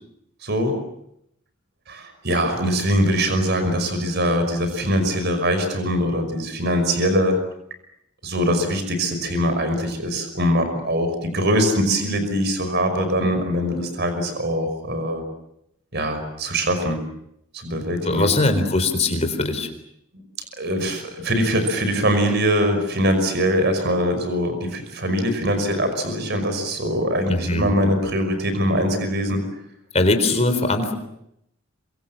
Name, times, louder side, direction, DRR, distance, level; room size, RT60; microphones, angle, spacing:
voice 1, 0.4-0.7 1.9-7.4 8.2-15.2 15.9-17.0 17.5-18.3 20.1-20.2 20.6-29.4, equal, 50° right, 8 dB, 5.6 m, -22 dB
voice 2, 18.0-19.7 27.3-27.7 29.9-30.9, left 2 dB, 30° left, 7 dB, 4.0 m, -21 dB
27.0 x 24.5 x 7.4 m, 0.77 s
head